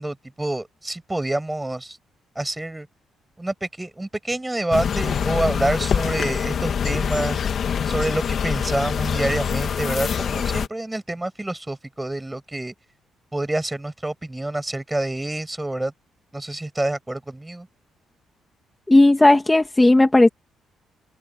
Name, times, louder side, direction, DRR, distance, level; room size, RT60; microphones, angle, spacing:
voice 1, 0.0-2.0 2.3-2.9 3.4-7.4 7.8-12.7 13.3-15.9 16.3-17.7, right 1 dB, 10° right, 6.6 m, -27 dB
sound 1, 4.7-10.7, left 7 dB, 55° left, 2.6 m, -24 dB
voice 2, 18.9-20.3, left 2 dB, 15° left, 1.9 m, -14 dB
open air
cardioid pair, 90°, 0 cm